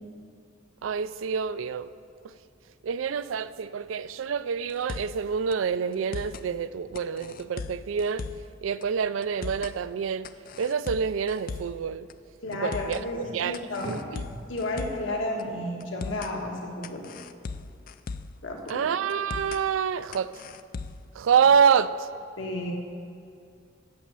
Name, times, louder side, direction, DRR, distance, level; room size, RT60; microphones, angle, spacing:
voice 1, 0.8-1.9 2.2-2.3 2.8-8.2 8.6-10.3 10.6-12.1 12.6-13.6 13.9-14.2 18.7-20.3 21.1-22.1, right 7 dB, 80° right, 0.4 m, -27 dB
sound 1, 4.7-5.2 5.5-5.6 5.9-6.5 7.0-8.5 8.8-8.9 9.2-9.8 10.2-11.8 12.1-12.2 12.5-13.1 13.5-15.1 15.4-15.5 15.8-16.3 16.8-18.4 18.7-18.8 19.1-19.6 20.1-21.1, left 4 dB, 45° left, 0.4 m, -38 dB
voice 2, 12.4-14.1 14.5-17.1 18.4-18.9 22.4-22.7, left 1 dB, 75° left, 1.5 m, -32 dB
8.7 x 7.4 x 7.5 m
head